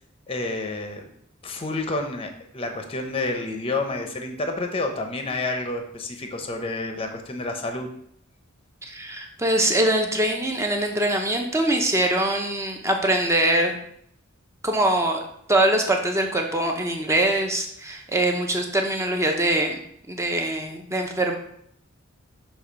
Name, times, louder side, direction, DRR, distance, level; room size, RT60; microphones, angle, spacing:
voice 1, 0.3-1.0 1.4-7.9, left 2 dB, 30° left, 4 dB, 0.7 m, -29 dB
voice 2, 8.8-13.8 14.6-15.2 15.5-19.8 20.1-21.3, right 1 dB, 15° right, 2 dB, 0.8 m, -23 dB
6.4 x 3.2 x 5.1 m, 0.69 s
head